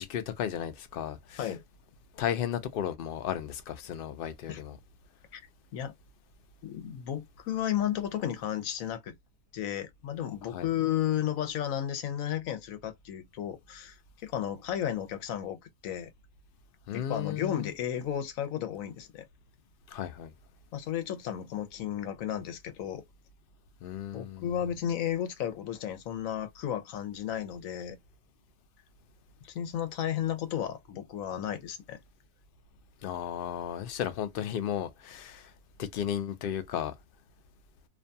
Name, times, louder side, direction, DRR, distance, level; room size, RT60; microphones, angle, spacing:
voice 1, 0.0-1.5 2.1-4.8 10.5-10.7 16.9-17.7 19.9-20.3 23.8-24.5 33.0-35.5 35.8-36.9, left 9 dB, 60° left, 0.6 m, -34 dB
voice 2, 6.6-9.1 9.5-16.1 16.9-19.2 20.7-23.0 24.1-28.0 29.4-32.0, left 10 dB, 85° left, 1.1 m, -33 dB
2.6 x 2.2 x 2.6 m
omnidirectional pair, 1.4 m